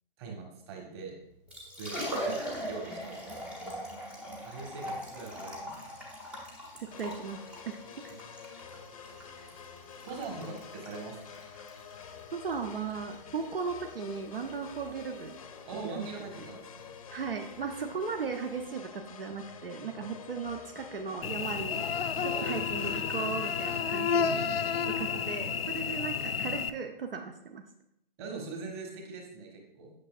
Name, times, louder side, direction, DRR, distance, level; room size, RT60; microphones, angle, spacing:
voice 1, 0.2-1.1 1.8-3.4 4.4-5.9 8.2-8.3 10.0-11.2 15.6-16.9 19.8-20.2 22.3-22.7 24.2-24.7 28.2-29.9, right 3 dB, 30° right, 0 dB, 1.4 m, -42 dB
Liquid, 1.3-18.7, equal, 5° right, 0.5 m, -42 dB
voice 2, 6.8-7.8 8.0-8.1 12.3-15.4 15.7-16.1 17.1-21.8 22.2-24.4 25.0-27.6, right 5 dB, 70° right, 5 dB, 0.7 m, -37 dB
sound 1, 6.9-23.8, left 7 dB, 35° left, 0.6 m, -48 dB
Cricket / Buzz, 21.2-26.7, left 6 dB, 80° left, 0.6 m, -31 dB
8.5 x 6.1 x 2.4 m, 0.76 s
figure-of-eight pair, 140°, 29 cm